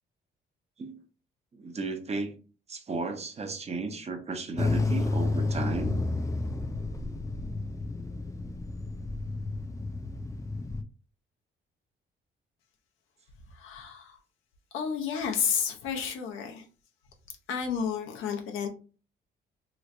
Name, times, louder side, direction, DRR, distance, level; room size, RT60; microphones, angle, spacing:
voice 1, 1.6-2.3 2.7-6.0, right 3 dB, 35° right, 0.7 m, -34 dB
sound 1, 4.6-10.8, left 3 dB, 15° left, 0.4 m, -31 dB
voice 2, 13.5-14.2 14.7-16.6 17.5-18.7, left 7 dB, 85° left, 0.8 m, -31 dB
3.1 x 3.1 x 2.5 m
cardioid pair, 90°, 20 cm